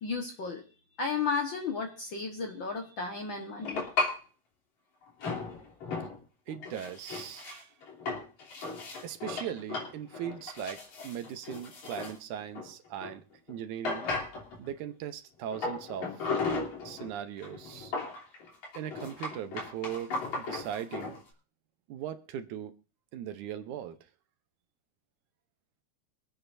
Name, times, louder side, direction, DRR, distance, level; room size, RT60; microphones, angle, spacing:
voice 1, 0.0-0.6 1.0-3.9, left 5 dB, 50° left, 3 dB, 1.6 m, -33 dB
sound 1, 3.6-4.2 5.2-6.2 6.5-13.1 13.5-13.6 13.8-14.7 15.5-17.1 17.4-21.2, left 3 dB, 65° left, 4.3 m, -36 dB
voice 2, 6.5-7.7 9.0-14.0 14.6-16.3 16.8-17.9 18.7-21.2 21.9-22.8 23.1-24.0, right 10 dB, 75° right, 9 dB, 2.3 m, -39 dB
25.0 x 8.9 x 2.7 m, 0.36 s
omnidirectional pair, 3.6 m